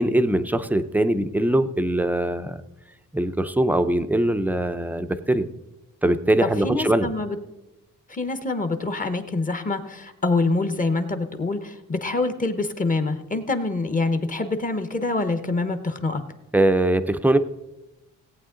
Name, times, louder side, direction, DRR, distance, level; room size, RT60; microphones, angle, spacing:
voice 1, 0.0-2.6 3.1-5.5 6.0-7.1 16.5-17.4, right 1 dB, 5° right, 10 dB, 0.5 m, -21 dB
voice 2, 6.6-7.4 8.1-16.2, left 3 dB, 25° left, 9 dB, 0.9 m, -25 dB
17.5 x 8.7 x 3.8 m, 0.99 s
cardioid pair, 125°, 33 cm